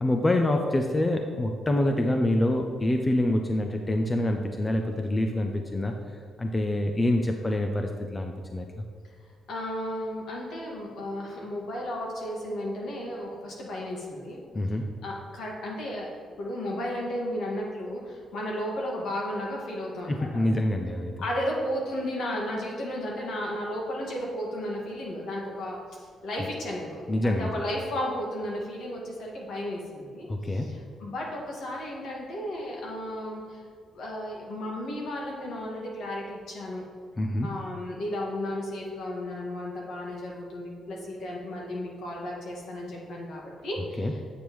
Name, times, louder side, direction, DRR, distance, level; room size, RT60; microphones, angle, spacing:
voice 1, 0.0-5.9 6.4-8.8 14.5-14.9 20.1-21.2 27.1-27.6 30.3-30.7 37.2-37.5 44.0-44.1, left 1 dB, 15° left, 4 dB, 0.4 m, -26 dB
voice 2, 9.5-14.4 15.0-16.1 16.4-20.4 21.2-33.6 33.9-36.8 37.4-44.2, left 1 dB, 70° left, -2 dB, 1.8 m, -34 dB
8.3 x 7.2 x 3.1 m, 2.1 s
cardioid pair, 150°, 0 cm